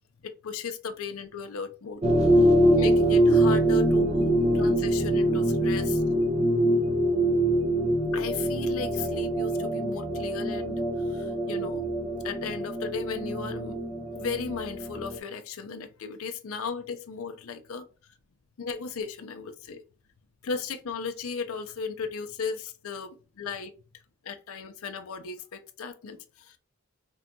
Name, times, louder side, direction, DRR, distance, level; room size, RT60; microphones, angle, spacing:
voice 1, 0.2-2.0 2.7-6.0 8.1-11.9 12.2-13.8 14.1-17.8 18.6-19.8 20.4-23.1 23.4-23.7 24.2-26.6, left 5 dB, 65° left, 0.5 m, -36 dB
sound 1, 2.0-15.2, right 1 dB, 30° right, 0.7 m, -24 dB
5.4 x 2.8 x 2.7 m
head